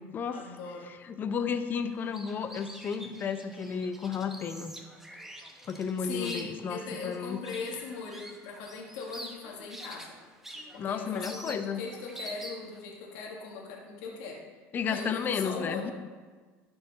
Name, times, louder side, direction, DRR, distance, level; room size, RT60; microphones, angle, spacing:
voice 1, 0.3-0.9 6.0-10.2 10.7-14.4 14.8-15.9, left 4 dB, 80° left, -1 dB, 1.6 m, -39 dB
voice 2, 1.0-4.7 5.7-7.4 10.8-11.8 14.7-15.9, left 6 dB, 35° left, 10 dB, 0.6 m, -32 dB
sound 1, 1.9-12.8, right 1 dB, 5° right, 0.9 m, -47 dB
12.0 x 4.7 x 4.0 m, 1.4 s
supercardioid pair, 125°, 6 cm